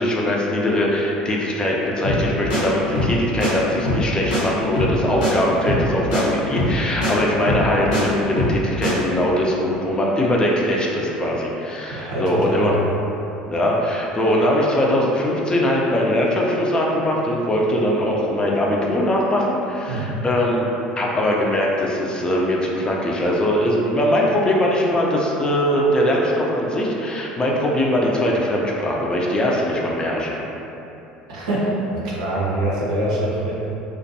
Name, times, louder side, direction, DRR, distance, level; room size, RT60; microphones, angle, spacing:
voice 1, 0.0-12.8 13.5-20.7 21.0-30.4, left 1 dB, 20° left, -3 dB, 0.4 m, -21 dB
sound 1, 2.0-2.2 2.5-2.6 2.9-3.1 3.4-3.5 3.8-4.1 4.3-4.4 4.7-5.0 5.2-5.3 5.7-5.9 6.1-6.2 6.6-6.8 7.0-7.1 7.5-8.0 8.4-8.6 8.8-8.9, left 1 dB, 85° left, 0.8 m, -22 dB
voice 2, 11.9-12.8 19.9-20.1 31.3-33.5, right 1 dB, 75° right, -6 dB, 0.6 m, -24 dB
2.5 x 2.3 x 2.6 m, 2.9 s
hypercardioid pair, 70°, 4 cm